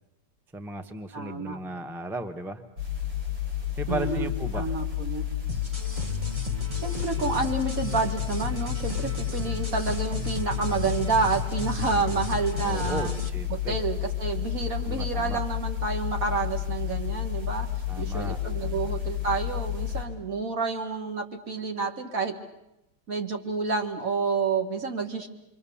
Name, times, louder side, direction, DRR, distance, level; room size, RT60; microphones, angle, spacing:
voice 1, 0.5-2.6 3.8-4.7 12.6-13.8 14.8-15.4 17.9-18.8, right 1 dB, ahead, 7 dB, 0.9 m, -35 dB
voice 2, 1.1-1.6 3.9-5.3 6.7-13.1 13.5-17.7 18.0-22.4 23.1-25.3, right 4 dB, 50° right, 4 dB, 2.2 m, -29 dB
sound 1, 2.8-20.0, left 11 dB, 90° right, 5.7 m, -31 dB
sound 2, 5.5-13.3, equal, 20° right, 1.5 m, -36 dB
27.5 x 23.5 x 7.1 m, 0.88 s
omnidirectional pair, 1.9 m